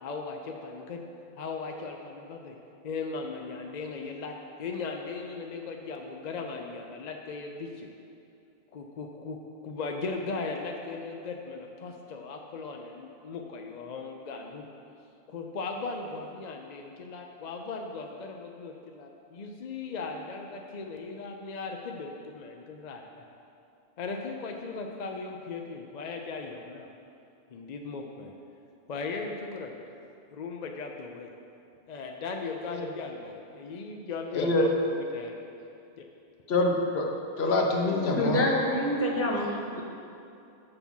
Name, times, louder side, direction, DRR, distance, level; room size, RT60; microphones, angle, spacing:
voice 1, 0.0-1.0 1.4-2.6 2.8-7.9 8.7-9.4 9.6-14.6 15.3-23.2 24.0-26.9 27.5-28.3 28.9-29.7 30.3-31.3 31.9-35.4 36.0-36.1, left 4 dB, 50° left, 2 dB, 0.6 m, -38 dB
voice 2, 34.3-34.6 36.5-37.1 37.4-38.4, left 2 dB, 85° left, 1 dB, 1.1 m, -25 dB
voice 3, 38.2-39.8, left 1 dB, 15° left, -1 dB, 0.7 m, -27 dB
6.8 x 5.9 x 5.4 m, 2.6 s
omnidirectional pair, 1.0 m